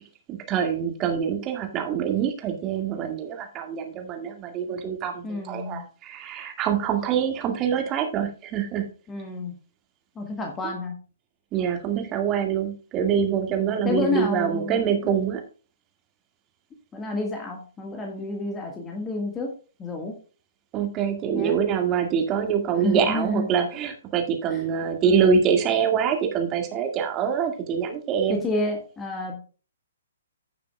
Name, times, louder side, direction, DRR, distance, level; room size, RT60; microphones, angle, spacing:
voice 1, 0.3-8.8 11.5-15.4 20.7-28.4, right 7 dB, 25° right, 3 dB, 2.0 m, -25 dB
voice 2, 5.2-5.8 9.1-9.5 10.1-10.9 13.5-15.0 16.9-19.5 19.8-20.1 21.3-21.6 22.8-23.5 24.5-24.6 28.3-29.4, left 2 dB, 15° left, 2 dB, 1.6 m, -30 dB
16.0 x 6.8 x 2.3 m, 0.36 s
figure-of-eight pair, 120°, 0 cm